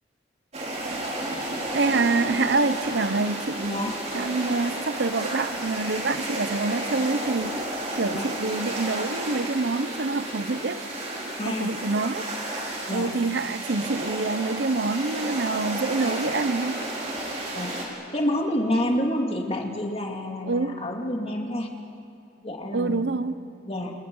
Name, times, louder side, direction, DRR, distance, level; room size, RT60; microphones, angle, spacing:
sound 1, 0.5-17.8, right 1 dB, 35° right, 5.2 m, -32 dB
voice 1, 1.7-7.6 8.0-10.8 11.4-12.3 12.9-16.9 20.5-20.9 22.7-23.5, right 3 dB, 65° right, 13 dB, 0.8 m, -26 dB
voice 2, 11.4-11.7 12.9-13.1 17.5-17.7 18.1-21.7 22.4-23.0 23.7-23.9, left 1 dB, 35° left, 1 dB, 2.6 m, -28 dB
30.0 x 28.5 x 5.5 m, 2.5 s
head